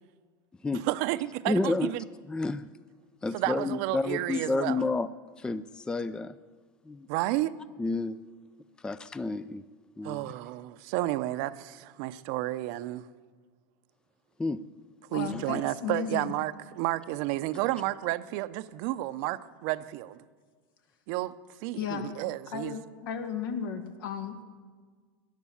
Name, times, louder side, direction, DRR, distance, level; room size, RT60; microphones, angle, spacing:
voice 1, 0.7-2.0 3.3-4.8 7.1-7.6 10.0-13.1 15.1-20.2 21.1-21.4 21.6-22.8, right 16 dB, 55° right, 0.7 m, -31 dB
voice 2, 1.5-1.9 2.3-2.7 3.2-5.1 5.4-6.4 6.9-7.1 7.8-8.2 8.8-9.6 10.0-10.3 14.4-14.6 15.2-15.6, left 3 dB, 5° left, 0.4 m, -30 dB
voice 3, 15.1-16.3 21.8-22.1 22.5-24.4, left 7 dB, 80° left, 2.0 m, -35 dB
18.0 x 11.0 x 7.1 m
supercardioid pair, 130°, 12 cm